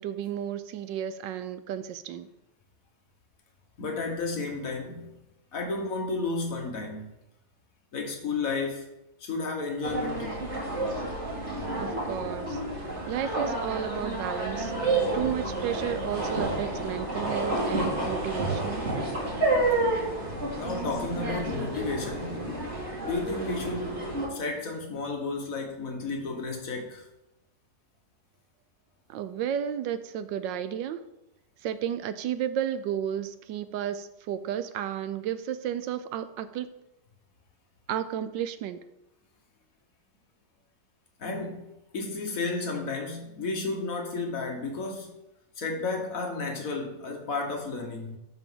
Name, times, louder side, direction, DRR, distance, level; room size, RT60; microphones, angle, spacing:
voice 1, 0.0-2.3 11.8-12.6 13.1-14.7 15.1-18.8 29.1-31.0 31.6-36.7 37.9-38.8, right 10 dB, 80° right, 1.3 m, -32 dB
voice 2, 3.8-5.2 5.5-7.1 7.9-8.9 9.2-10.4 20.6-22.7 23.0-27.0 41.2-45.2 45.6-48.2, left 3 dB, 50° left, 1.5 m, -32 dB
sound 1, 9.8-24.3, right 2 dB, 40° right, 2.7 m, -30 dB
12.0 x 5.0 x 3.7 m
omnidirectional pair, 2.0 m